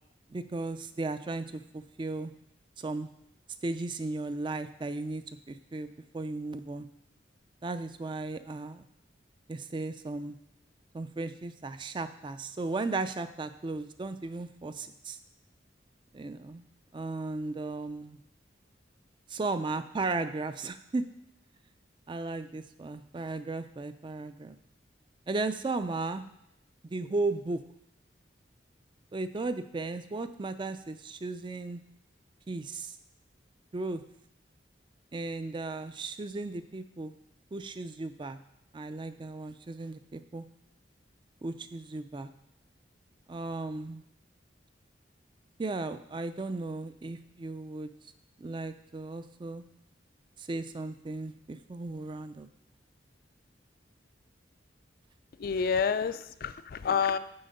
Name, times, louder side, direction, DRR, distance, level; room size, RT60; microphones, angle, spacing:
voice 1, 0.3-2.3 2.8-3.1 3.6-6.9 7.6-8.9 9.5-10.4 10.9-15.2 16.1-16.6 16.9-18.2 19.3-21.0 22.1-24.6 25.3-26.2 26.8-27.6 29.1-31.8 32.5-33.0 33.7-34.0 35.1-37.2 37.5-38.4 38.7-40.5 41.4-42.3 43.3-44.0 45.6-47.9 48.4-49.7 50.4-52.5, right 3 dB, 25° right, 11 dB, 0.4 m, -35 dB
voice 2, 55.4-57.2, left 6 dB, 50° left, 13 dB, 0.3 m, -28 dB
7.8 x 4.9 x 5.2 m, 0.78 s
head